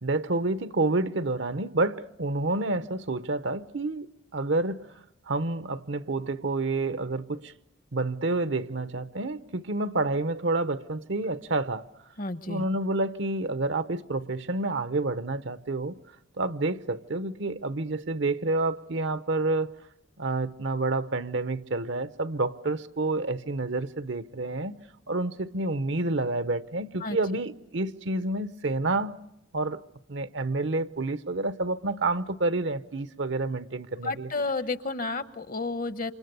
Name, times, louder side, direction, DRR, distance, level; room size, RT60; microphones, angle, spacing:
voice 1, 0.0-4.9 5.3-7.5 7.9-11.8 12.5-16.0 16.4-19.7 20.2-24.7 25.1-29.1 29.5-29.8 30.1-34.3, right 2 dB, 70° right, 0.9 m, -29 dB
voice 2, 12.2-12.6 27.0-27.2 34.0-36.1, left 3 dB, 45° left, 1.0 m, -31 dB
28.5 x 26.5 x 6.9 m
head